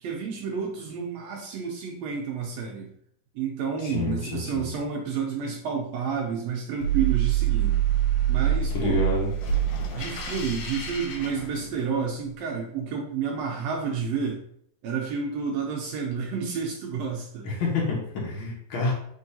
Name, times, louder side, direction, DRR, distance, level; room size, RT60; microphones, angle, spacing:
voice 1, 0.0-2.9 3.3-7.8 8.3-9.1 9.9-14.4 14.8-17.5, right 6 dB, 80° right, 0 dB, 1.5 m, -30 dB
voice 2, 3.8-4.7 8.7-9.3 17.4-18.9, left 2 dB, 60° left, -3 dB, 1.4 m, -28 dB
sound 1, 6.8-12.1, right 9 dB, 80° left, 2.2 m, -26 dB
4.5 x 3.5 x 2.7 m, 0.67 s
omnidirectional pair, 3.6 m